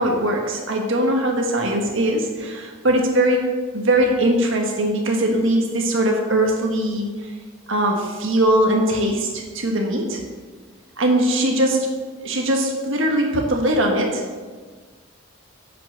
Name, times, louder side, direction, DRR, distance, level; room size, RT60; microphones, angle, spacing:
voice 1, 0.0-3.4 3.7-7.3 7.7-10.2 11.0-11.9 12.2-14.2, right 1 dB, 70° right, 1 dB, 1.5 m, -20 dB
11.0 x 5.9 x 6.6 m, 1.5 s
head